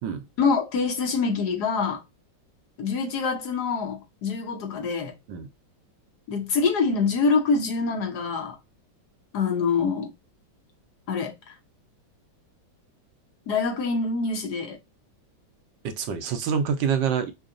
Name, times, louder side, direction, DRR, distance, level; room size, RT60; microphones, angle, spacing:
voice 1, 0.4-2.0 2.8-5.1 6.3-8.6 9.3-10.1 11.1-11.5 13.5-14.8, left 4 dB, 65° left, 1.3 m, -25 dB
voice 2, 15.8-17.3, right 7 dB, 75° right, 1.3 m, -26 dB
5.6 x 2.2 x 2.5 m
omnidirectional pair, 2.1 m